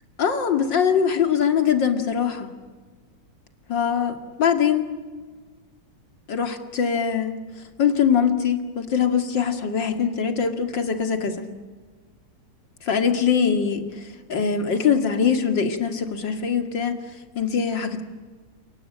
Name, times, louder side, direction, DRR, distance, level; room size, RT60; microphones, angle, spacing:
voice 1, 0.2-2.5 3.7-4.9 6.3-7.4 7.8-11.5 12.8-13.9 14.3-17.0 17.4-18.0, left 7 dB, 85° left, 7 dB, 2.9 m, -22 dB
29.0 x 23.5 x 8.8 m, 1.4 s
omnidirectional pair, 1.9 m